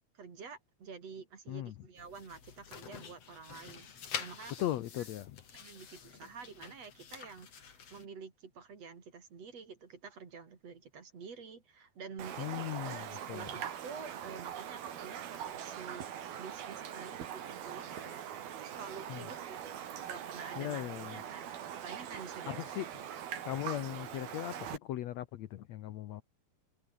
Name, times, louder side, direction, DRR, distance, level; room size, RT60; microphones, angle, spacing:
voice 1, 0.1-3.9 4.2-4.6 5.5-16.1 16.4-19.8 20.1-21.5 21.8-22.9, right 5 dB, 45° right, 4.0 m, -49 dB
sound 1, 2.0-8.0, left 7 dB, 45° left, 3.4 m, -47 dB
voice 2, 4.6-5.4 12.4-13.4 19.1-19.2 20.6-21.2 22.6-22.8 23.4-26.2, left 13 dB, 75° left, 1.6 m, -38 dB
Raindrop, 12.2-24.8, right 9 dB, 80° right, 4.2 m, -42 dB
omnidirectional pair, 4.3 m